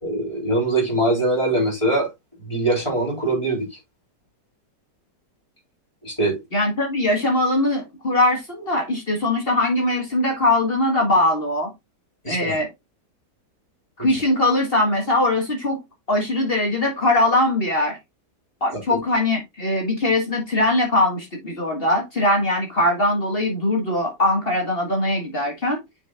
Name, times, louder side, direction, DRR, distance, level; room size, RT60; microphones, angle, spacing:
voice 1, 0.0-2.1 2.4-3.7 6.0-6.4 12.2-12.6 18.9-19.0, right 1 dB, 15° left, 3.8 m, -22 dB
voice 2, 6.5-11.7 12.3-12.7 14.0-15.8 16.1-18.0 18.6-25.8, left 1 dB, 35° left, 1.9 m, -21 dB
8.6 x 5.0 x 2.4 m
omnidirectional pair, 1.8 m